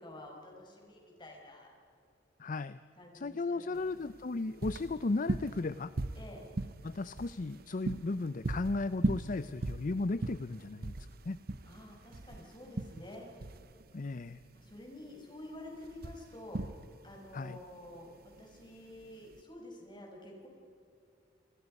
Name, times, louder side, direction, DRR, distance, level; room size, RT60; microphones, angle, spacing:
voice 1, 0.0-1.7 3.0-4.1 6.2-6.4 11.7-13.3 14.5-20.5, left 1 dB, 25° left, 0 dB, 5.5 m, -50 dB
voice 2, 2.4-2.8 3.1-5.9 6.8-11.0 11.2-11.4 13.9-14.4 17.3-17.6, left 3 dB, 45° left, 14 dB, 0.5 m, -35 dB
sound 1, 3.8-19.4, right 2 dB, 55° right, 0.8 m, -39 dB
28.5 x 21.0 x 5.4 m, 2.6 s
head